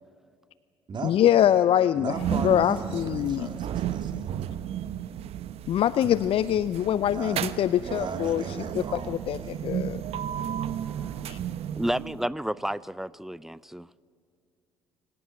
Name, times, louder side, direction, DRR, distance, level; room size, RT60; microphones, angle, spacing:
voice 1, 1.0-2.1 2.4-3.5 5.7-8.4 8.9-10.0 11.3-11.4, left 11 dB, 50° left, 17 dB, 0.5 m, -24 dB
voice 2, 2.0-4.3 6.9-7.4 7.8-9.7, right 4 dB, 40° right, 5 dB, 2.8 m, -38 dB
sound 1, 2.1-12.3, right 10 dB, 55° right, 0.9 m, -33 dB
voice 3, 11.8-13.9, equal, 5° right, 20 dB, 0.5 m, -31 dB
23.0 x 18.0 x 9.6 m, 2.3 s
hypercardioid pair, 55°, 12 cm